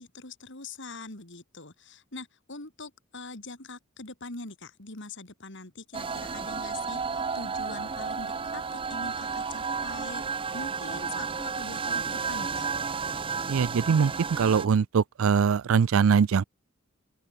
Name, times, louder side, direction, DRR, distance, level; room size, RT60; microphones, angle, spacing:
voice 1, 0.0-10.3 10.5-12.7, left 3 dB, 60° left, 3.6 m, -43 dB
The Begining has End, 5.9-14.7, right 5 dB, 25° right, 0.6 m, -32 dB
voice 2, 13.5-16.4, right 6 dB, 70° right, 0.4 m, -22 dB
open air
head